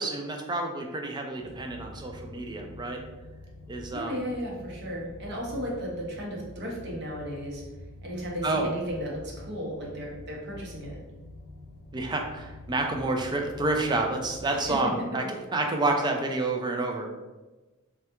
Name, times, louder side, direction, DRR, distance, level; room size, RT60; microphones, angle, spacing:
voice 1, 0.0-3.0 3.7-4.2 8.4-8.7 11.9-15.2 15.5-17.1, right 2 dB, 20° right, 3 dB, 0.3 m, -29 dB
sound 1, 1.3-14.7, left 1 dB, 50° left, 0.6 m, -46 dB
voice 2, 3.9-7.6 8.0-11.0 14.7-14.8, equal, 50° right, -2 dB, 0.7 m, -35 dB
3.3 x 2.3 x 2.9 m, 1.2 s
head